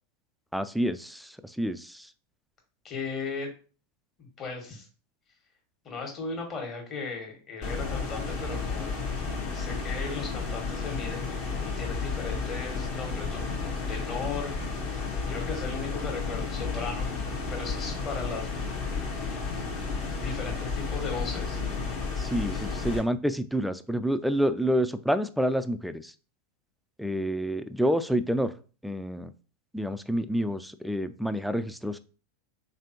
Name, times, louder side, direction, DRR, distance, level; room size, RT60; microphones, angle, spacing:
voice 1, 0.5-2.1 22.2-26.1 27.0-28.5 28.8-29.3 29.7-32.0, equal, ahead, 12 dB, 0.3 m, -28 dB
voice 2, 2.8-3.5 4.2-4.9 5.8-9.0 9.5-11.3 11.6-14.5 15.3-17.1 17.5-18.5 20.1-21.6, left 4 dB, 35° left, 1 dB, 1.5 m, -36 dB
sound 1, 7.6-23.0, left 4 dB, 50° left, 1.4 m, -32 dB
3.6 x 3.3 x 2.9 m, 0.37 s
figure-of-eight pair, 90°, 0 cm